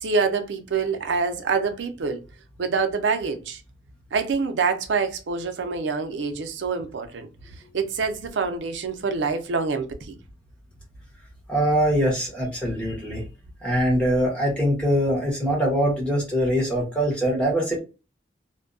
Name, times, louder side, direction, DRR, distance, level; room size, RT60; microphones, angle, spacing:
voice 1, 0.0-2.2 2.6-3.6 4.1-7.3 7.7-10.2, right 5 dB, 90° right, 0.5 m, -26 dB
voice 2, 11.5-13.2 13.6-17.8, equal, 5° left, 1.0 m, -23 dB
2.6 x 2.1 x 2.5 m
head